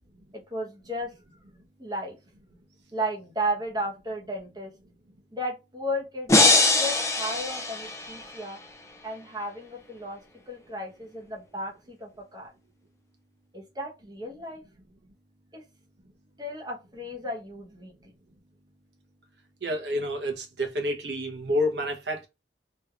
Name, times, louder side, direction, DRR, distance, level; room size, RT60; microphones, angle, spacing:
voice 1, 0.3-1.1 1.8-2.2 2.9-4.7 5.3-8.6 9.0-10.2 10.5-12.5 13.5-14.6 15.5-15.6 16.4-17.9, equal, 20° right, 1.0 m, -34 dB
sound 1, 6.3-8.4, left 2 dB, 15° left, 0.5 m, -22 dB
voice 2, 19.6-22.3, equal, 75° right, 1.0 m, -29 dB
3.1 x 2.9 x 2.4 m
head